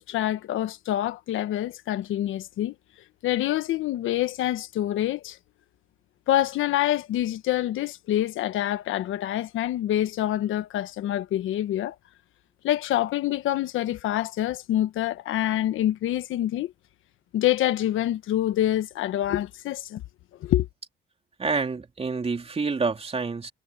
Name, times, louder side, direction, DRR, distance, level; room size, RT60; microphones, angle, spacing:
voice 1, 0.0-2.7 3.2-5.4 6.3-11.9 12.6-16.7 17.3-20.0 20.4-20.7, left 13 dB, 85° left, 1.3 m, -26 dB
voice 2, 21.4-23.5, right 4 dB, 30° right, 3.5 m, -28 dB
cardioid pair, 90°, 20 cm